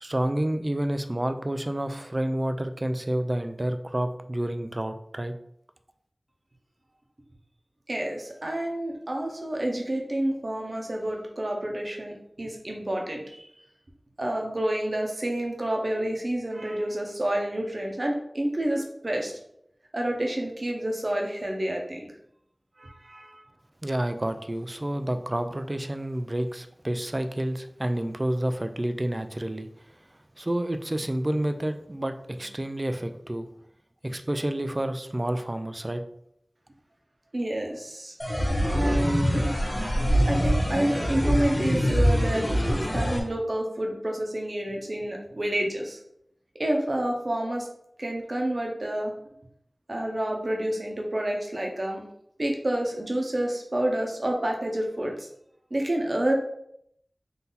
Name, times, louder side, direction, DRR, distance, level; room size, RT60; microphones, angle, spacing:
voice 1, 0.0-5.3 23.8-29.7 30.4-33.5 34.0-36.0, right 1 dB, 35° right, 8 dB, 0.4 m, -29 dB
voice 2, 7.9-13.4 14.2-19.3 19.9-22.1 22.8-23.4 37.3-38.1 38.7-39.4 40.3-42.5 42.8-46.0 46.6-47.7 48.0-49.1 49.9-52.1 52.4-55.3 55.7-56.3, right 1 dB, 50° right, 1 dB, 0.9 m, -29 dB
sound 1, 38.2-43.2, equal, 20° left, 1.3 m, -24 dB
3.9 x 2.8 x 4.0 m, 0.73 s
wide cardioid pair, 60°, 0 cm